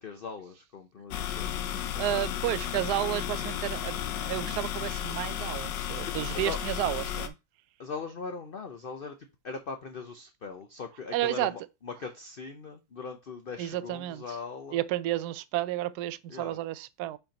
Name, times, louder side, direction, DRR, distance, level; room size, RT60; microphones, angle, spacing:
voice 1, 0.0-2.2 6.0-6.6 7.8-14.8 16.3-16.6, left 5 dB, 50° left, 0.6 m, -40 dB
sound 1, 1.1-7.3, left 10 dB, 85° left, 1.5 m, -33 dB
voice 2, 2.0-7.3 11.1-11.5 13.6-14.2 14.7-17.2, right 14 dB, 75° right, 1.0 m, -31 dB
5.7 x 4.4 x 5.1 m
omnidirectional pair, 1.9 m